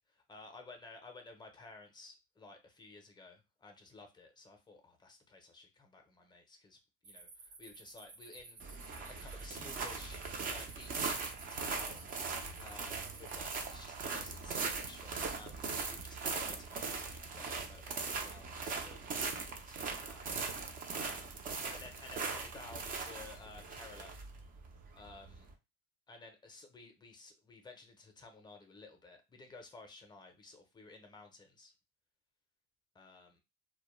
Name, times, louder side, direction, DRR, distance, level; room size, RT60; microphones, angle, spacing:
voice 1, 0.1-12.1 12.6-20.2 21.0-21.3 21.7-24.2 24.9-25.5 26.1-31.7 32.9-33.4, left 3 dB, 15° left, 4 dB, 0.6 m, -54 dB
sound 1, 7.0-13.4, right 3 dB, 60° right, 1.1 m, -55 dB
sound 2, 8.6-25.5, right 4 dB, 30° right, 0.5 m, -40 dB
2.2 x 2.1 x 3.0 m, 0.25 s
supercardioid pair, 110°, 30 cm